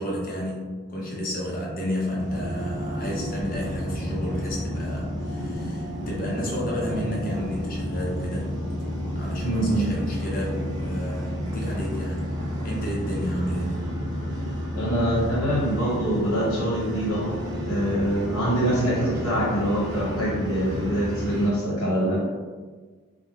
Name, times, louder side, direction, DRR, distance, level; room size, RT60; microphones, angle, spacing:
voice 1, 0.0-8.5 9.1-12.3 12.6-13.8, equal, 40° left, -3 dB, 0.7 m, -31 dB
sound 1, 2.2-21.5, equal, 20° right, 0.6 m, -31 dB
voice 2, 9.4-9.9 14.7-17.4 17.7-22.2, right 1 dB, 85° left, -6 dB, 1.2 m, -24 dB
2.3 x 2.1 x 3.2 m, 1.4 s
head